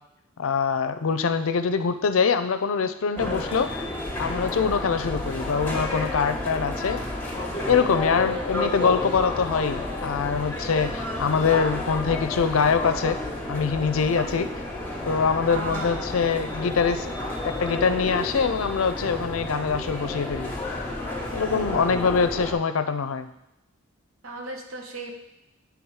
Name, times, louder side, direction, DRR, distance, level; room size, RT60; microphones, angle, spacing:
voice 1, 0.4-3.7 4.2-7.0 7.7-13.2 13.5-14.5 15.1-17.1 17.4-20.5 21.3-23.3, left 5 dB, 80° left, 10 dB, 0.5 m, -24 dB
sound 1, 3.2-22.5, left 2 dB, 10° left, 1.2 m, -31 dB
voice 2, 15.5-16.2 24.2-25.1, right 3 dB, 85° right, 2 dB, 1.1 m, -35 dB
8.7 x 3.5 x 4.7 m, 0.92 s
head